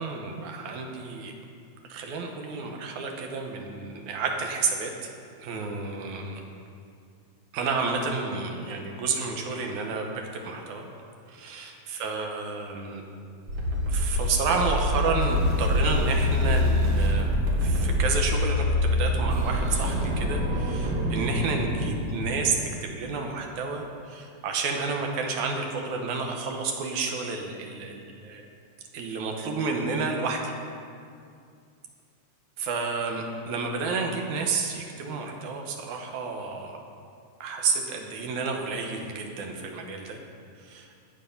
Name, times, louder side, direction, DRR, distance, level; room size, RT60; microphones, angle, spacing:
voice 1, 0.0-1.3 1.9-5.1 5.4-6.4 7.5-10.8 11.3-13.0 13.9-17.3 17.6-28.4 28.9-30.5 32.6-36.8 37.4-40.2 40.6-40.9, right 4 dB, 80° right, 2 dB, 2.5 m, -30 dB
sound 1, 13.5-22.6, left 1 dB, 45° right, 1.5 m, -25 dB
13.0 x 8.1 x 5.4 m, 2.3 s
omnidirectional pair, 3.5 m